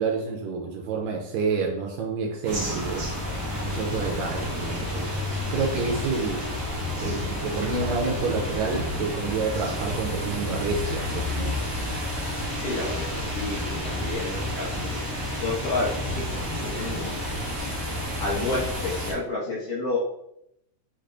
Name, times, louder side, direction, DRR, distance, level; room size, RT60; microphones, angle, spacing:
voice 1, 0.0-3.1 3.6-5.2 5.5-6.5 7.0-11.5, right 4 dB, 80° right, 1 dB, 1.7 m, -28 dB
sound 1, 2.4-19.1, left 1 dB, 45° right, 1.1 m, -30 dB
voice 2, 12.6-14.9 15.4-16.2 16.6-17.2 18.2-20.0, left 3 dB, 70° left, -5 dB, 1.5 m, -30 dB
5.9 x 3.3 x 2.5 m, 0.77 s
omnidirectional pair, 3.5 m